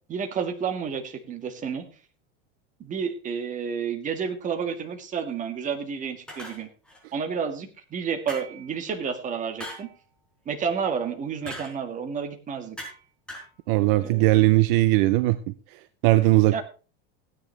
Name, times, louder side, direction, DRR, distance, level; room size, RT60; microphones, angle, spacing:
voice 1, 0.1-1.9 2.8-6.7 7.1-9.9 10.5-12.8 14.0-14.2 16.5-16.6, right 6 dB, 25° right, 6 dB, 1.9 m, -30 dB
sound 1, 6.3-7.0 8.3-8.7 9.6-9.9 11.5-11.8 12.8-13.0 13.3-13.5, equal, 5° left, 4.7 m, -39 dB
voice 2, 13.7-15.4 16.0-16.6, right 19 dB, 60° right, 13 dB, 0.7 m, -19 dB
16.0 x 10.0 x 3.3 m, 0.35 s
supercardioid pair, 150°, 30 cm